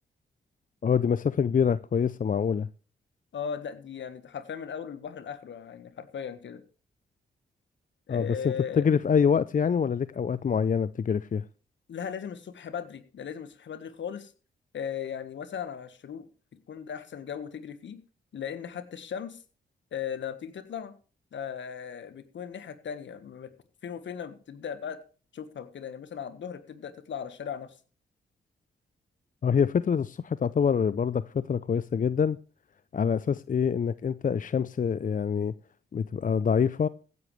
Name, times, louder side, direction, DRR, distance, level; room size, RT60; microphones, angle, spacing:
voice 1, 0.8-2.7 8.1-11.4 29.4-32.4 32.9-35.5 35.9-36.9, left 7 dB, 40° left, 0.6 m, -25 dB
voice 2, 3.3-6.6 8.1-8.9 11.9-14.3 14.7-16.3 16.7-18.0 18.3-19.4 19.9-20.9 21.3-23.5 23.8-25.0 25.3-27.7, left 7 dB, 65° left, 1.5 m, -37 dB
15.5 x 11.0 x 3.3 m
supercardioid pair, 40°, 20 cm